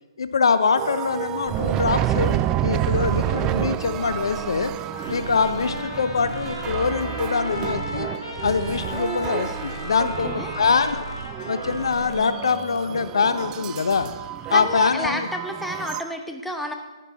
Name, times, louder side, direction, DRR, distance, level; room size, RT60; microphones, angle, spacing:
voice 1, 0.2-4.7 5.1-8.1 8.4-11.0 11.5-14.1 14.5-15.3, left 5 dB, 65° left, 12 dB, 0.6 m, -23 dB
sound 1, 0.8-16.0, right 12 dB, 20° right, 0.4 m, -29 dB
sound 2, 1.9-2.5 2.8-3.7 3.9-4.8 5.0-5.9 6.1-6.9 7.2-8.0 8.3-9.1 9.4-10.2 10.5-11.3 11.6-12.2, right 4 dB, 85° right, 2.4 m, -38 dB
Trumpet, 4.9-12.4, left 2 dB, 85° left, 2.3 m, -37 dB
voice 2, 10.0-10.5 14.5-16.7, left 1 dB, ahead, 3 dB, 0.9 m, -30 dB
10.0 x 9.9 x 4.1 m, 1.2 s
figure-of-eight pair, 130°, 3 cm